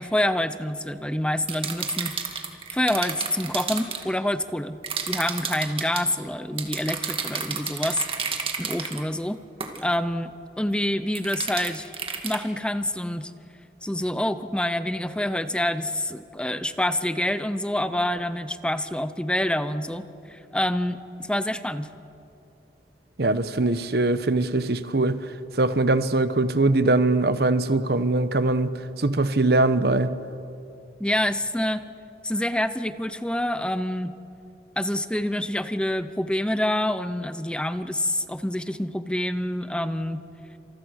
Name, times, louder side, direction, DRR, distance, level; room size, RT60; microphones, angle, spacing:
voice 1, 0.0-2.4 2.7-4.8 5.1-8.0 8.3-9.4 9.8-11.9 12.2-13.3 13.8-21.9 31.0-31.9 32.2-34.2 34.8-40.2, left 1 dB, 5° left, 12 dB, 0.7 m, -27 dB
sound 1, 1.5-4.0 4.8-6.0 6.6-9.0 9.6-9.8 11.2-12.4, right 6 dB, 30° right, 2.2 m, -31 dB
voice 2, 23.2-30.1, right 2 dB, 65° right, 12 dB, 1.0 m, -22 dB
28.0 x 27.0 x 6.5 m, 2.6 s
head